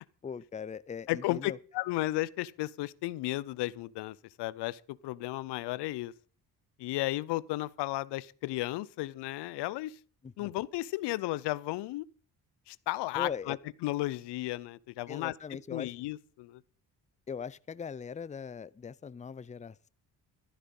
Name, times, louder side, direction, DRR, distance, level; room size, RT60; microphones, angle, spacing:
voice 1, 0.2-1.6 10.2-10.5 13.2-13.6 15.1-15.9 17.3-19.9, left 6 dB, 20° left, 0.5 m, -40 dB
voice 2, 1.1-6.1 6.8-10.0 10.4-12.1 12.7-13.6 13.8-15.3 15.7-16.6, left 17 dB, 85° left, 0.7 m, -34 dB
13.0 x 11.5 x 5.4 m
supercardioid pair, 70°, 40 cm